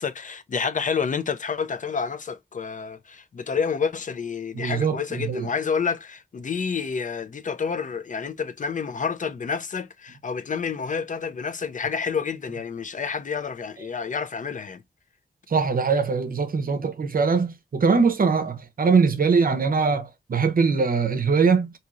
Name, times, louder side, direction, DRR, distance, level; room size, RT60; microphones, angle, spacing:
voice 1, 0.0-14.8, left 6 dB, 50° left, 0.4 m, -29 dB
voice 2, 4.5-5.5 15.5-21.7, right 5 dB, 60° right, 0.6 m, -22 dB
2.9 x 2.7 x 2.4 m
cardioid pair, 60°, 17 cm